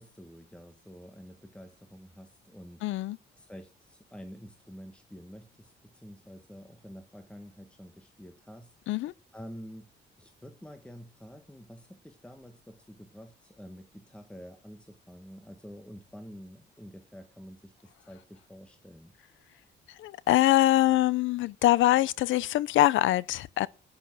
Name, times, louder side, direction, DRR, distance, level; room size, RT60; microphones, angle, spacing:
voice 1, 0.0-3.0 3.4-8.9 9.3-9.9 10.2-19.1, equal, 5° left, 1.6 m, -48 dB
voice 2, 2.8-3.2 8.9-9.1 20.0-23.7, left 15 dB, 80° left, 0.5 m, -24 dB
11.5 x 9.9 x 6.1 m
cardioid pair, 90°, 20 cm